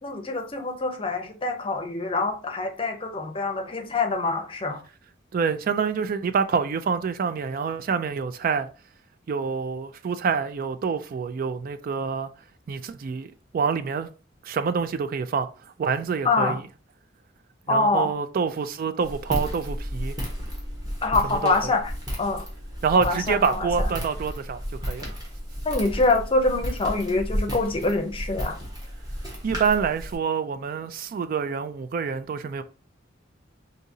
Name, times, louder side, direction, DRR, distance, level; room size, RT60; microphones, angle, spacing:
voice 1, 0.0-4.8 16.2-16.6 17.7-18.1 21.0-21.9 22.2-22.4 22.9-23.9 25.6-28.6, left 3 dB, 30° left, 0.6 m, -25 dB
voice 2, 5.3-8.7 9.3-12.3 12.7-14.1 14.4-16.6 17.7-20.2 21.2-21.7 22.8-25.2 29.4-32.6, right 6 dB, 50° right, 0.3 m, -27 dB
Walk footsteps, 19.0-30.1, equal, 20° right, 1.2 m, -33 dB
5.0 x 2.7 x 2.7 m
head